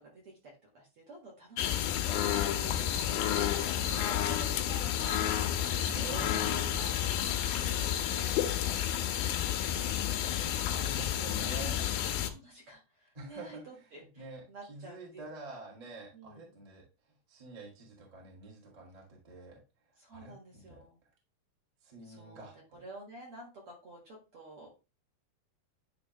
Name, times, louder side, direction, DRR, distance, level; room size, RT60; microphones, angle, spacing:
voice 1, 0.1-6.9 7.3-9.5 10.5-11.5 12.1-15.5 16.1-16.5 20.0-21.0 22.0-24.7, right 2 dB, 50° right, -2 dB, 1.9 m, -51 dB
sound 1, 1.6-12.3, left 10 dB, 85° left, 2.6 m, -31 dB
voice 2, 5.8-6.3 10.7-11.8 13.1-13.6 14.1-16.8 17.3-19.6 20.1-20.8 21.8-22.8, right 2 dB, 20° right, -2 dB, 1.0 m, -47 dB
sound 2, 6.0-8.6, right 4 dB, 80° right, 2.5 m, -49 dB
9.7 x 3.7 x 3.1 m, 0.29 s
omnidirectional pair, 4.2 m